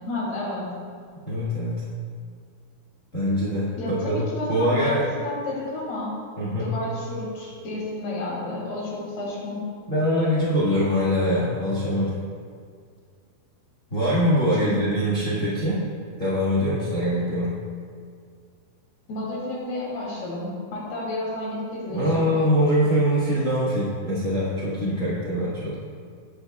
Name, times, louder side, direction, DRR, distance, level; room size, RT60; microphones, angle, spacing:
voice 1, 0.1-0.7 3.8-4.9 5.2-6.1 6.6-9.6 14.6-14.7 19.1-22.3, left 1 dB, 85° left, -6 dB, 4.7 m, -31 dB
voice 2, 1.2-1.8 3.1-4.2 4.5-5.1 6.4-6.7 9.9-12.2 13.9-15.9 16.2-17.5 21.9-25.8, equal, 40° left, -7 dB, 1.2 m, -23 dB
16.5 x 10.5 x 2.4 m, 2.1 s
omnidirectional pair, 4.4 m